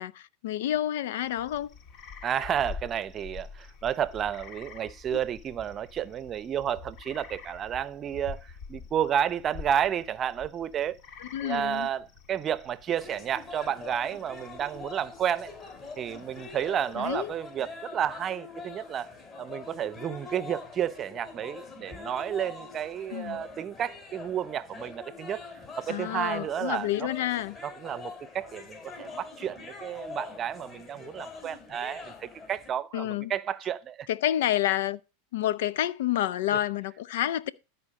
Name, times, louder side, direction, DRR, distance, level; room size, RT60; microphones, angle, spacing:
voice 1, 0.0-1.7 11.2-11.9 17.0-17.3 23.1-23.4 25.9-27.6 32.9-33.3 34.1-35.0 35.3-37.5, left 12 dB, 75° left, 0.6 m, -29 dB
sound 1, 1.2-17.5, left 5 dB, 45° left, 1.5 m, -47 dB
voice 2, 2.2-11.0 11.4-15.5 16.0-19.1 19.4-25.4 25.8-27.1 27.6-34.1, right 9 dB, 30° right, 0.7 m, -31 dB
sound 2, 13.0-32.7, left 4 dB, 25° left, 4.0 m, -44 dB
12.5 x 4.5 x 6.4 m
hypercardioid pair, 115°, 0 cm